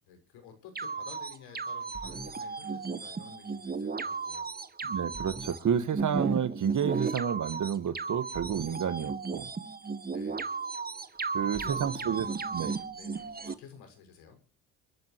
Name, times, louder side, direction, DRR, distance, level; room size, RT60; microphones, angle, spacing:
voice 1, 0.0-4.5 10.1-10.5 11.0-14.4, left 7 dB, 70° left, 6.6 m, -52 dB
sound 1, 0.8-13.5, right 4 dB, 20° right, 1.6 m, -35 dB
voice 2, 4.9-9.5 11.3-12.3 12.5-12.7, right 8 dB, 45° right, 1.8 m, -30 dB
28.5 x 12.0 x 3.1 m
hypercardioid pair, 65°, 41 cm